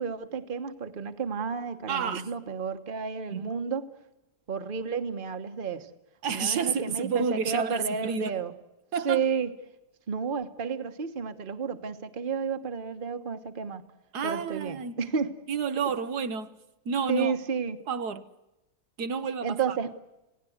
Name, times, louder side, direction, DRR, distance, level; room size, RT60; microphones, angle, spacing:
voice 1, 0.0-3.9 4.5-5.9 6.3-8.5 9.0-9.5 10.1-13.8 14.2-15.3 17.1-17.8 19.4-19.9, right 6 dB, 35° right, 1.3 m, -31 dB
voice 2, 1.9-2.3 3.3-3.4 6.2-8.4 8.9-9.3 14.1-15.0 15.5-16.6 16.8-17.3 17.9-18.3 19.0-19.8, right 6 dB, 80° right, 1.6 m, -30 dB
28.0 x 17.5 x 8.0 m
omnidirectional pair, 1.7 m